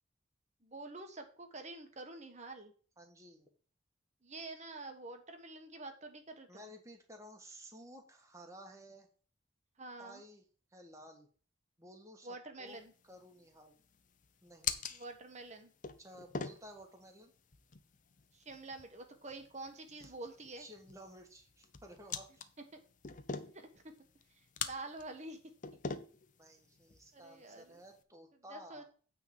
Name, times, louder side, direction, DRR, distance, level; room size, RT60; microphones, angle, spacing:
voice 1, 0.6-2.7 4.2-6.7 9.8-10.2 12.2-12.9 14.9-15.7 18.3-20.7 22.7-22.8 23.5-23.9 24.3-25.4 27.1-27.8 28.5-28.8, right 2 dB, 35° right, 5 dB, 1.2 m, -47 dB
voice 2, 3.0-3.5 6.5-9.1 10.0-10.4 10.7-11.3 11.8-12.3 12.6-12.8 13.1-13.7 14.4-14.8 16.0-17.3 20.0-20.2 20.5-22.4 26.4-28.8, equal, 15° right, 3 dB, 1.6 m, -54 dB
sound 1, 12.7-28.0, left 6 dB, 40° left, 0.7 m, -46 dB
9.3 x 3.8 x 7.1 m, 0.41 s
head